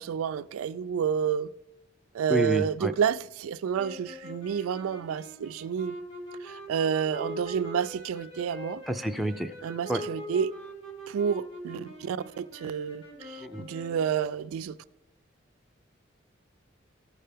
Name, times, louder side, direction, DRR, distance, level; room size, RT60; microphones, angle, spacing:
voice 1, 0.0-1.5 2.1-6.0 6.4-8.8 9.6-10.5 11.1-14.8, right 8 dB, 90° right, 0.3 m, -30 dB
voice 2, 2.3-2.9 8.9-9.5 9.9-10.0 13.4-13.6, equal, ahead, 0.4 m, -28 dB
sound 1, 3.7-14.2, left 1 dB, 75° left, 2.4 m, -42 dB
14.0 x 5.5 x 3.4 m
head